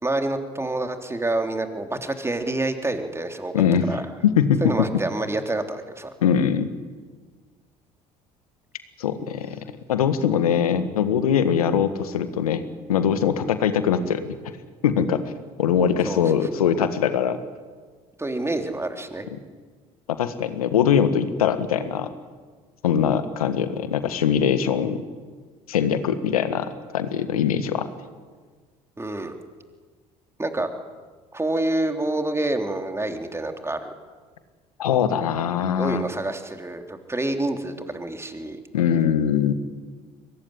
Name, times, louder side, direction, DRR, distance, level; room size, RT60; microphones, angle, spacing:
voice 1, 0.0-3.5 3.9-4.0 4.6-6.1 16.0-16.5 18.2-19.3 29.0-29.3 30.4-30.7 31.3-33.9 35.8-38.6, right 2 dB, 15° right, 5 dB, 3.3 m, -27 dB
voice 2, 3.5-3.9 4.2-4.9 6.2-6.7 9.0-14.4 14.8-15.2 15.6-17.4 19.3-19.4 20.2-22.1 22.8-25.0 25.7-27.9 34.8-36.0 38.7-39.5, left 8 dB, 85° left, 11 dB, 1.6 m, -22 dB
23.0 x 19.5 x 10.0 m, 1.5 s
hypercardioid pair, 60°, 18 cm